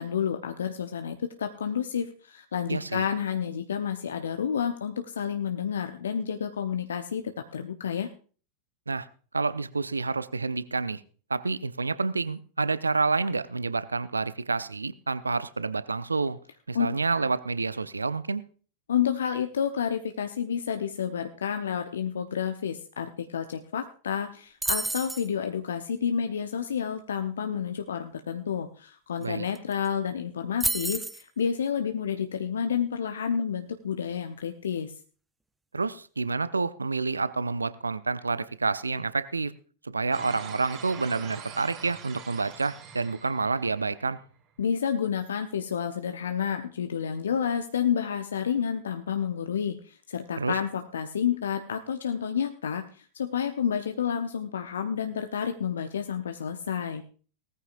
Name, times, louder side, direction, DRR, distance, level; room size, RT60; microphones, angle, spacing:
voice 1, 0.0-8.1 16.7-16.9 18.9-35.0 44.6-57.0, left 7 dB, 65° left, 7 dB, 0.9 m, -30 dB
voice 2, 2.7-3.0 8.9-9.1 9.3-11.0 11.3-16.4 16.7-18.4 29.2-29.5 35.7-39.5 39.8-44.2 50.4-50.6, right 4 dB, 80° right, 16 dB, 0.6 m, -28 dB
sound 1, 24.6-25.3 29.2-29.3 29.5-29.9 30.6-31.2, right 2 dB, 5° right, 0.6 m, -29 dB
sound 2, 40.1-44.2, right 7 dB, 35° right, 3.6 m, -44 dB
19.0 x 14.0 x 2.5 m, 0.40 s
figure-of-eight pair, 90°, 0 cm